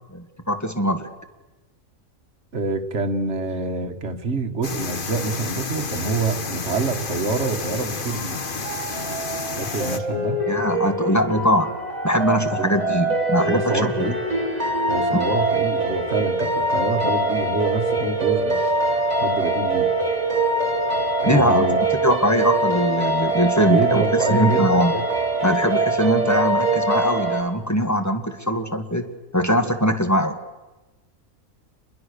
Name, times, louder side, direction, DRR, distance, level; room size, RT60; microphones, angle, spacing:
voice 1, 0.1-1.0 10.5-11.7 12.0-14.1 21.3-21.7 22.0-24.0 24.3-25.0 25.4-30.4, equal, 10° left, 6 dB, 1.9 m, -21 dB
voice 2, 2.5-8.4 9.6-10.4 12.5-12.8 13.4-14.2 14.9-18.7 19.2-19.9 21.2-21.8 23.7-25.0, right 3 dB, 55° right, 5 dB, 1.9 m, -26 dB
sound 1, 4.6-10.0, left 4 dB, 40° left, 1.4 m, -30 dB
sound 2, 8.1-27.4, right 2 dB, 30° right, 3.3 m, -23 dB
28.0 x 22.0 x 6.7 m, 1.1 s
omnidirectional pair, 1.4 m